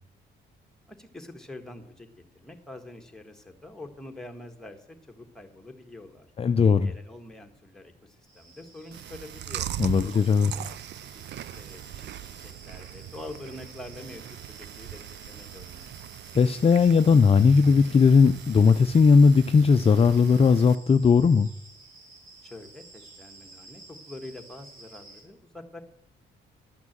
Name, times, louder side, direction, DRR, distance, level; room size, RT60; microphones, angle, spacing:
voice 1, 0.9-2.1 2.3-6.3 6.7-9.7 10.0-10.7 11.0-11.2 11.6-12.1 12.4-16.0 22.4-25.8, left 2 dB, 5° left, 4 dB, 1.7 m, -45 dB
voice 2, 6.4-6.9 9.8-10.5 16.3-21.5, left 5 dB, 30° left, 10 dB, 0.5 m, -18 dB
sound 1, 8.2-25.2, right 3 dB, 80° right, 3.3 m, -52 dB
Chewing mastication, 8.9-20.8, right 12 dB, 60° right, 0.5 m, -40 dB
12.0 x 6.1 x 7.4 m, 0.73 s
cardioid pair, 90°, 20 cm